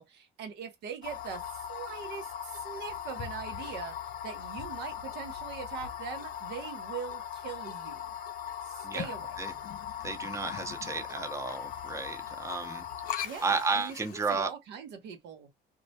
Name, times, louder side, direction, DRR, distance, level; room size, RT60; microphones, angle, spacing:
voice 1, 0.0-4.0 4.2-8.0 8.6-9.4 13.2-13.9 14.3-15.5, right 7 dB, 85° right, 0.8 m, -41 dB
sound 1, 1.0-14.4, left 9 dB, 55° left, 0.5 m, -39 dB
voice 2, 10.0-14.5, right 4 dB, 15° right, 0.6 m, -33 dB
2.3 x 2.1 x 2.7 m
cardioid pair, 110°, 17 cm